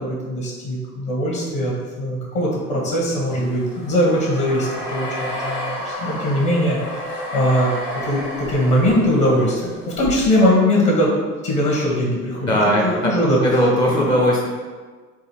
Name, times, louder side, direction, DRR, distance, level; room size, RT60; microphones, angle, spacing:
voice 1, 0.0-11.1 11.4-12.5 12.8-13.4, equal, 40° left, -3 dB, 1.1 m, -21 dB
sound 1, 3.0-10.1, left 1 dB, 80° left, 1.0 m, -31 dB
voice 2, 12.5-13.1 13.4-14.5, equal, 10° left, -3 dB, 0.4 m, -19 dB
3.8 x 2.6 x 4.4 m, 1.4 s
figure-of-eight pair, 65°, 46 cm